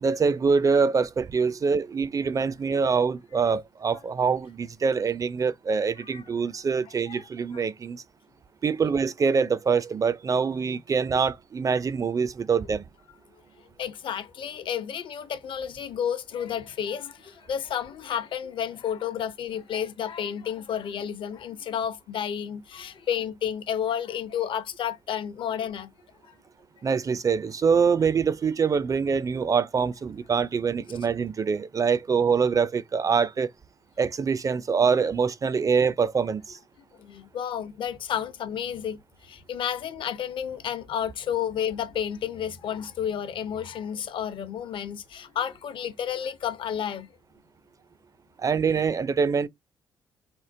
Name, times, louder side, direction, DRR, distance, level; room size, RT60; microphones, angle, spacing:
voice 1, 0.0-8.0 8.6-12.8 26.8-33.5 34.0-36.6 48.4-49.5, right 5 dB, 35° right, 0.4 m, -24 dB
voice 2, 13.8-25.9 26.3-26.4 37.0-47.1, left 9 dB, 60° left, 0.7 m, -31 dB
3.5 x 2.0 x 2.6 m
hypercardioid pair, 55°, 10 cm